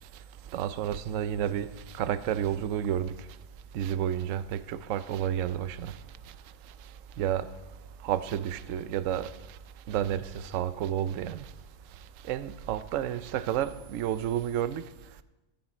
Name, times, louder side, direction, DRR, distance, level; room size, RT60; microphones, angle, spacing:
voice 1, 0.5-3.1 3.7-5.9 7.2-7.5 8.0-9.3 9.9-11.5 12.2-14.8, right 10 dB, 70° right, 0.7 m, -30 dB
14.5 x 14.0 x 4.4 m
omnidirectional pair, 2.1 m